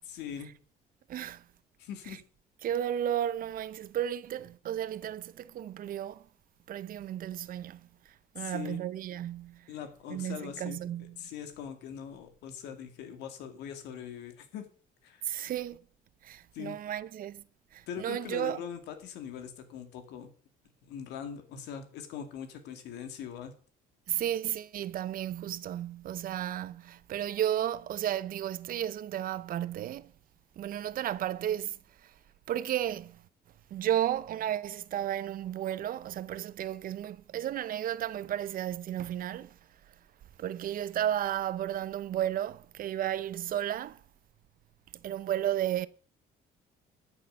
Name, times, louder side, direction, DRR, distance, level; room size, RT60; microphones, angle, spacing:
voice 1, 0.0-0.5 1.8-2.2 8.4-8.8 9.7-14.7 15.0-15.3 16.5-16.8 17.9-20.3 20.8-23.5, left 8 dB, 85° left, 2.4 m, -41 dB
voice 2, 1.1-1.4 2.6-6.2 6.7-7.9 8.3-9.7 10.1-11.2 15.2-15.8 16.2-17.4 17.7-18.6 24.1-30.1 30.6-32.1 32.5-33.2 33.7-39.6 40.4-44.0 45.0-45.9, right 11 dB, 55° right, 0.7 m, -33 dB
13.0 x 6.7 x 6.4 m
cardioid pair, 110°, 17 cm